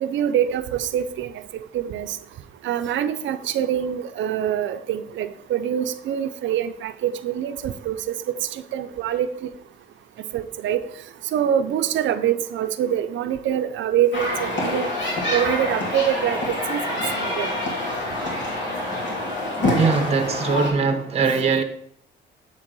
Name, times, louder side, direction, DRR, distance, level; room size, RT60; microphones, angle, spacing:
voice 1, 0.0-1.3 1.7-2.2 2.6-9.5 10.3-10.8 11.3-14.9 15.3-17.5, right 10 dB, 75° right, 0.6 m, -25 dB
sound 1, 14.1-20.7, left 1 dB, 65° left, 2.6 m, -26 dB
voice 2, 19.7-21.6, right 5 dB, 30° right, 0.8 m, -21 dB
7.6 x 3.7 x 6.2 m
cardioid pair, 90°, 20 cm